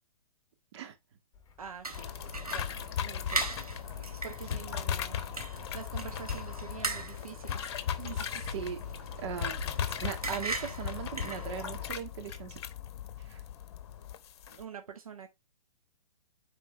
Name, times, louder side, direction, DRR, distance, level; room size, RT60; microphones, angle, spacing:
sound 1, 1.3-12.9, left 6 dB, 20° left, 2.1 m, -57 dB
voice 1, 1.6-3.8 4.2-5.2 5.5-8.3 14.5-15.3, right 7 dB, 70° right, 1.4 m, -46 dB
sound 2, 1.8-11.9, right 3 dB, 85° right, 1.5 m, -40 dB
sound 3, 1.9-14.6, left 9 dB, 45° left, 1.1 m, -37 dB
voice 2, 8.5-8.8 9.2-9.6 9.9-12.6 13.3-13.4, right 9 dB, 50° right, 1.8 m, -39 dB
9.6 x 4.4 x 3.3 m
figure-of-eight pair, 120°, 19 cm